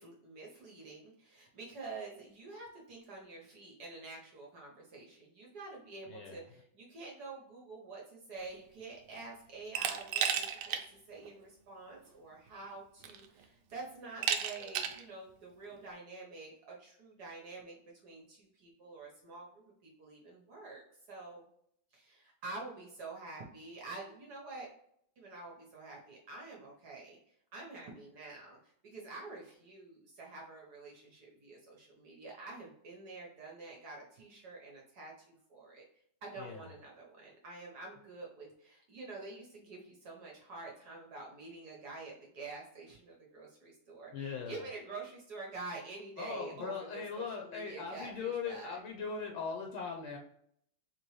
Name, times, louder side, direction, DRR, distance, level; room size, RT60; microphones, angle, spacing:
voice 1, 0.0-20.8 21.1-21.5 21.9-24.7 25.2-27.2 27.5-35.8 36.2-48.8, right 3 dB, 60° right, -2 dB, 1.3 m, -48 dB
voice 2, 6.1-6.4 36.4-36.6 44.1-44.6 46.2-50.2, left 5 dB, 90° left, 1 dB, 1.6 m, -40 dB
Glass, 9.7-10.8 11.2-11.3 12.5-12.6 13.0-13.4 14.2-15.0, right 8 dB, 85° right, 1.4 m, -33 dB
4.2 x 3.0 x 3.1 m, 0.70 s
omnidirectional pair, 2.2 m